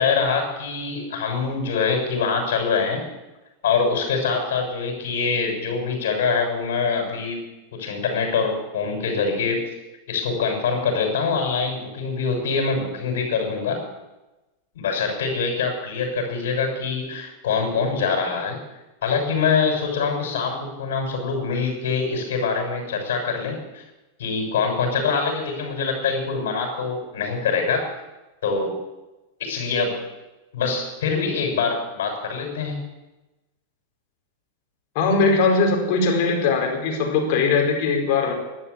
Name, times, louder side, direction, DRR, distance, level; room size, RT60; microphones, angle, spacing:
voice 1, 0.0-3.0 3.6-7.4 7.8-9.6 10.1-13.8 14.7-18.6 19.0-23.8 24.2-27.8 28.4-28.7 29.4-30.0 30.5-32.8, left 5 dB, 75° left, 2 dB, 6.6 m, -24 dB
voice 2, 34.9-38.3, left 4 dB, 60° left, 2 dB, 4.8 m, -20 dB
12.0 x 11.0 x 8.4 m, 1.0 s
hypercardioid pair, 110°, 0 cm